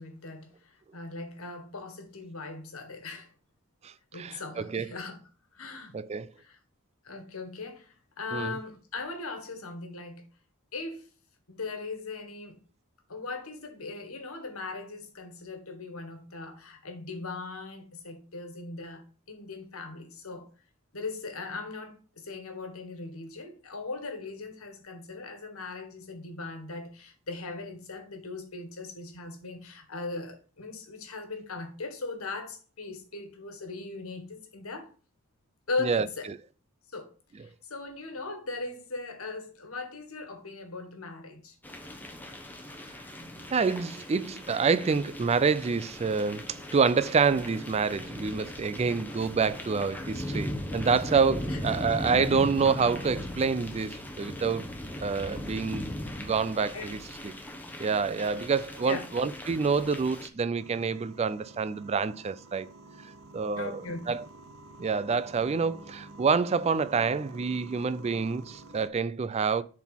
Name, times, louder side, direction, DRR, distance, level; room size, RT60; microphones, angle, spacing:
voice 1, 0.0-3.3 4.1-5.2 5.5-6.0 6.3-6.6 7.0-10.3 10.7-11.1 11.5-12.6 13.1-20.5 20.9-34.9 35.7-36.3 36.9-37.1 37.4-41.5 51.5-51.6 56.7-57.0 58.8-59.0 63.6-64.2, left 3 dB, 75° left, 1.6 m, -39 dB
voice 2, 3.8-4.9 5.9-6.3 8.3-8.5 35.8-36.1 43.5-54.7 55.0-55.9 56.2-57.0 57.2-57.3 57.8-62.7 63.3-63.8 64.1-64.2 64.8-69.6, right 5 dB, 30° right, 0.3 m, -27 dB
sound 1, 41.6-60.3, left 1 dB, 10° left, 0.9 m, -39 dB
sound 2, 60.6-68.9, right 2 dB, 70° right, 0.8 m, -49 dB
7.2 x 4.1 x 5.8 m
head